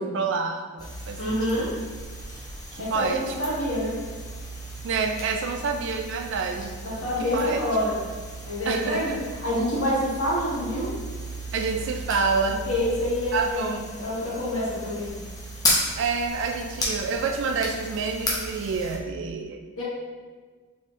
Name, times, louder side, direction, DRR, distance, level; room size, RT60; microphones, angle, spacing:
voice 1, 0.1-1.7 2.7-3.3 4.8-6.8 7.3-7.6 8.7-9.2 11.5-12.7 13.3-13.9 16.0-19.8, right 4 dB, 60° right, 4 dB, 0.3 m, -28 dB
sound 1, 0.8-19.0, equal, 20° left, 0.6 m, -34 dB
voice 2, 1.2-1.7 2.7-4.0 6.8-8.0 8.4-10.9 12.5-13.7 14.0-15.1 19.8-19.9, left 1 dB, 75° left, -7 dB, 1.4 m, -27 dB
4.2 x 3.4 x 2.5 m, 1.5 s
head